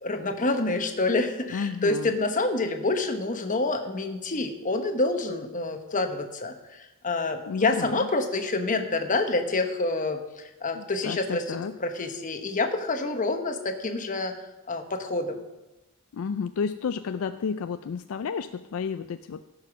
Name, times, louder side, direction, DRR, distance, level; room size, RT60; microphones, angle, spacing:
voice 1, 0.0-14.3 14.7-15.4, left 2 dB, 35° left, 6 dB, 1.1 m, -27 dB
voice 2, 1.5-2.2 7.4-8.1 10.7-11.7 16.1-19.5, left 6 dB, 65° left, 10 dB, 0.4 m, -32 dB
16.0 x 5.7 x 5.8 m, 1.0 s
head